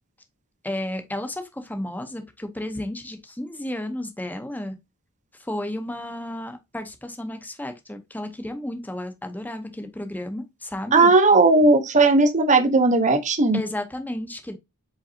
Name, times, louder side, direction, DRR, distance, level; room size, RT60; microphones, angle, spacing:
voice 1, 0.6-4.8 5.4-11.1 13.5-14.6, left 1 dB, 10° left, 0.7 m, -32 dB
voice 2, 10.9-13.6, right 3 dB, 35° right, 0.8 m, -17 dB
5.0 x 3.9 x 2.7 m
head